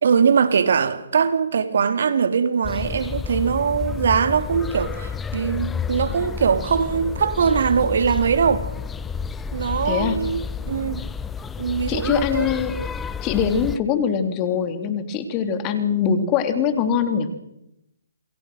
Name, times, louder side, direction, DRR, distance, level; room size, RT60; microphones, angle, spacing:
voice 1, 0.0-8.7 9.5-11.0 11.6-12.5, right 6 dB, 60° right, 2.2 m, -21 dB
sound 1, 2.6-13.8, left 6 dB, 10° left, 0.8 m, -30 dB
voice 2, 9.8-10.2 11.9-12.7 13.2-17.3, left 7 dB, 25° left, 3.3 m, -22 dB
28.5 x 22.5 x 6.3 m
figure-of-eight pair, 140°, 0 cm